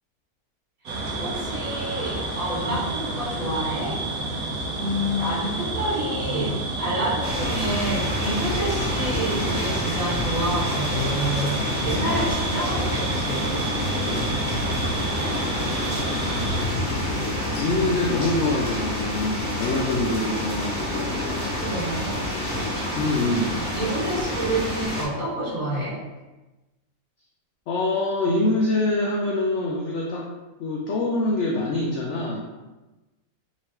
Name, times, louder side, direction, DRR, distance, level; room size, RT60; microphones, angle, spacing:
voice 1, 0.8-4.0 4.3-4.4 4.7-13.7 21.5-22.2 23.7-26.0, right 1 dB, 65° right, -14 dB, 2.1 m, -29 dB
sound 1, 0.9-16.6, right 2 dB, 85° right, 1.4 m, -30 dB
sound 2, 7.2-25.0, left 1 dB, 35° left, 1.3 m, -28 dB
voice 2, 17.6-21.1 23.0-23.6 27.7-30.3 30.6-32.5, left 2 dB, 65° left, -2 dB, 0.8 m, -25 dB
3.7 x 3.2 x 3.0 m, 1.1 s
omnidirectional pair, 1.5 m